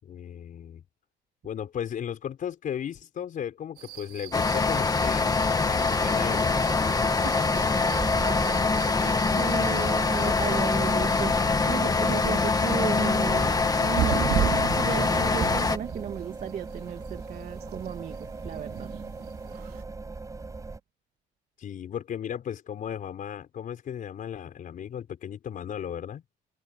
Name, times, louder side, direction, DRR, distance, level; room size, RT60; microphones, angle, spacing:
voice 1, 0.0-0.8 1.4-6.8 21.6-26.2, left 9 dB, 50° left, 5.1 m, -36 dB
Distant thunder in suburban area, 3.8-19.8, right 12 dB, 70° right, 5.0 m, -37 dB
sound 1, 4.3-15.8, left 4 dB, 20° left, 1.6 m, -24 dB
sound 2, 6.0-20.8, right 3 dB, 20° right, 5.3 m, -39 dB
voice 2, 7.2-18.2 18.4-18.9, right 8 dB, 50° right, 2.3 m, -35 dB
cardioid pair, 110°, 17 cm